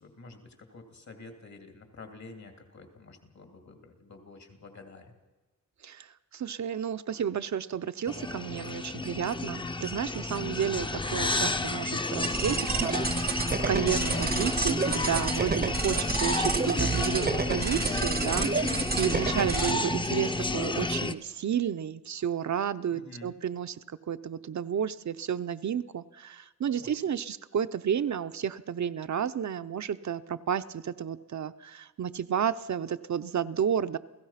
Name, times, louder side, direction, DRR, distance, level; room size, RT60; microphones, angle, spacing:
voice 1, 0.0-5.1 22.9-23.4 26.7-27.0, left 3 dB, 65° left, 5 dB, 2.9 m, -49 dB
voice 2, 6.3-23.8 24.1-34.0, right 8 dB, 70° right, 10 dB, 0.6 m, -31 dB
sound 1, 8.1-21.1, left 2 dB, 15° left, 0.6 m, -31 dB
sound 2, 12.2-19.7, right 4 dB, 30° right, 0.7 m, -30 dB
28.5 x 16.0 x 5.8 m, 1.2 s
wide cardioid pair, 120°, 30 cm